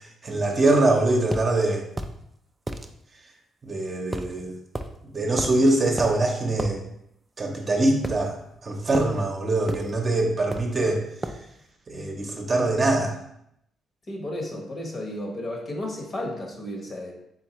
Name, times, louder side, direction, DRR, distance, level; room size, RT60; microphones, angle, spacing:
voice 1, 0.2-1.8 3.6-4.5 5.1-6.8 7.4-8.3 8.6-11.0 11.9-13.2, right 2 dB, 35° right, 1 dB, 0.8 m, -23 dB
sound 1, 1.3-1.5 2.0-2.2 2.7-2.9 4.1-4.3 4.7-4.9 5.4-5.6 6.0-6.1 6.6-6.7 8.0-8.6 8.9-9.1 9.7-9.9 10.5-10.8 11.2-11.4, right 1 dB, 20° right, 0.4 m, -32 dB
voice 2, 14.1-17.1, left 1 dB, 40° left, 1 dB, 1.0 m, -33 dB
4.1 x 3.5 x 3.0 m, 0.76 s
cardioid pair, 90°, 0 cm